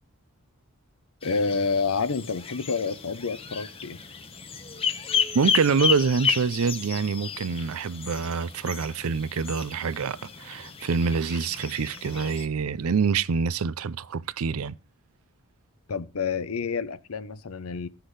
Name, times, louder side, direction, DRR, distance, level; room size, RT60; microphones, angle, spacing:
voice 1, 1.2-4.0 15.9-17.9, left 4 dB, 85° left, 0.7 m, -28 dB
sound 1, 1.2-12.5, left 7 dB, 25° left, 0.8 m, -32 dB
voice 2, 5.3-14.7, right 5 dB, 90° right, 0.5 m, -26 dB
16.5 x 5.8 x 3.2 m
head